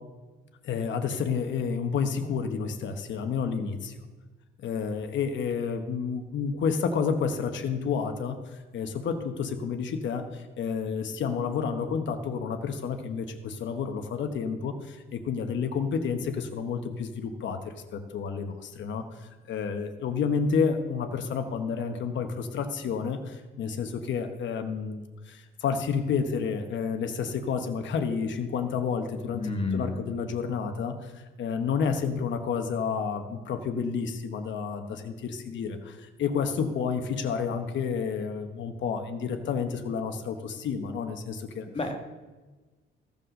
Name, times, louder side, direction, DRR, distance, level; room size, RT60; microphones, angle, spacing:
voice 1, 0.6-3.9 4.6-41.7, left 6 dB, 70° left, 7 dB, 1.1 m, -30 dB
voice 2, 29.3-30.0 41.7-42.0, left 3 dB, 30° left, 5 dB, 1.7 m, -29 dB
14.5 x 5.3 x 6.4 m, 1.3 s
cardioid pair, 90°, 20 cm